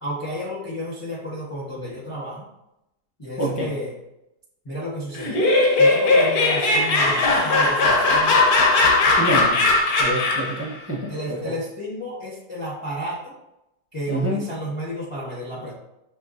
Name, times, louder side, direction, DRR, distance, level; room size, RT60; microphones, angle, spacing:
voice 1, 0.0-2.5 3.2-4.0 4.6-5.5 5.8-8.4 11.1-13.3 13.9-15.7, equal, 35° left, -4 dB, 0.5 m, -32 dB
voice 2, 3.4-3.7 9.2-9.6 10.0-11.1 11.4-11.5 14.1-14.4, right 1 dB, 20° right, -3 dB, 0.4 m, -26 dB
Laughter, 5.1-10.6, left 2 dB, 65° left, 1.2 m, -18 dB
6.0 x 3.1 x 2.5 m, 0.87 s
omnidirectional pair, 1.8 m